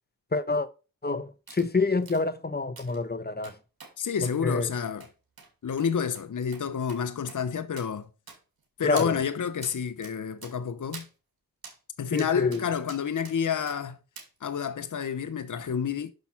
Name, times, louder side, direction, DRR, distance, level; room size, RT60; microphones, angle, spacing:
voice 1, 0.3-0.7 1.0-3.6 4.4-4.7 8.8-9.2 12.1-12.6, left 3 dB, 25° left, 1.0 m, -27 dB
sound 1, 1.5-1.7 2.0-2.2 2.8-3.0 3.4-3.9 4.2-4.4 5.0-5.1 5.4-5.5 5.8-5.9 6.2-6.3 6.5-6.6 6.9-7.0 7.3-7.4 7.8-7.9 8.3-8.6 9.0-9.1 9.6-9.7 10.0-10.1 10.4-10.5 10.9-11.1 11.6-11.8 12.2-12.6 12.9-13.4 13.7-13.8 14.2-14.3 14.6-14.7, right 5 dB, 75° right, 2.6 m, -45 dB
voice 2, 4.0-5.1 5.6-8.1 8.8-11.1 12.0-14.0 14.4-16.1, left 7 dB, 55° left, 0.9 m, -29 dB
6.6 x 5.8 x 6.0 m
cardioid pair, 40°, 36 cm